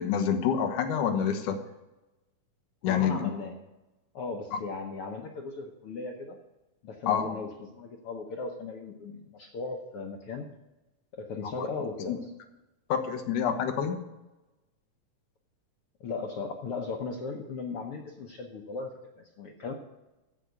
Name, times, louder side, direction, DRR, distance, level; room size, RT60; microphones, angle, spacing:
voice 1, 0.0-1.6 2.8-3.3 4.5-4.6 7.1-7.4 11.4-11.5 12.1-12.2 12.9-14.0, left 8 dB, 90° left, 7 dB, 2.6 m, -27 dB
voice 2, 2.8-3.6 4.1-6.4 6.8-10.5 11.1-12.2 16.0-19.7, left 4 dB, 60° left, 1 dB, 1.5 m, -37 dB
15.0 x 5.0 x 8.2 m, 1.0 s
omnidirectional pair, 3.5 m